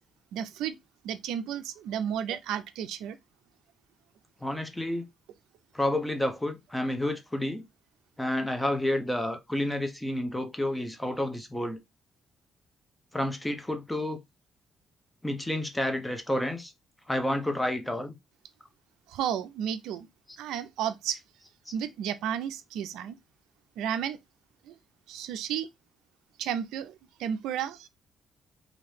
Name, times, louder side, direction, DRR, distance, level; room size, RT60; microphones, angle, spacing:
voice 1, 0.3-0.8 1.0-3.2 19.1-20.1 20.4-21.2 21.7-23.2 23.8-24.2 24.6-24.8 25.1-25.7 26.4-27.9, right 9 dB, 90° right, 0.3 m, -32 dB
voice 2, 4.4-5.1 5.7-7.7 8.2-11.8 13.1-14.2 15.2-16.7 17.1-18.2, left 1 dB, 10° left, 0.7 m, -30 dB
2.9 x 2.6 x 3.2 m
cardioid pair, 90°, 0 cm